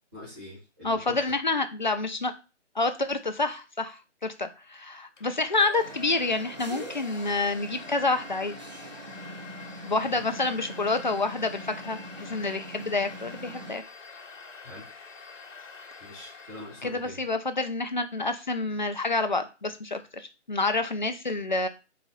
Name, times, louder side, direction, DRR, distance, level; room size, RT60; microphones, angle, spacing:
voice 1, 0.1-1.2 10.1-10.2 14.6-14.9 16.0-17.2, left 2 dB, 10° right, -10 dB, 0.8 m, -43 dB
voice 2, 0.8-2.3 2.8-8.6 9.8-13.8 16.8-21.7, left 3 dB, 40° left, 8 dB, 0.4 m, -28 dB
Domestic sounds home sounds, 5.2-17.3, left 4 dB, 80° left, 0.9 m, -46 dB
sound 1, 5.8-13.8, right 1 dB, 35° right, 0.5 m, -43 dB
4.0 x 2.3 x 3.8 m, 0.31 s
figure-of-eight pair, 155°, 37 cm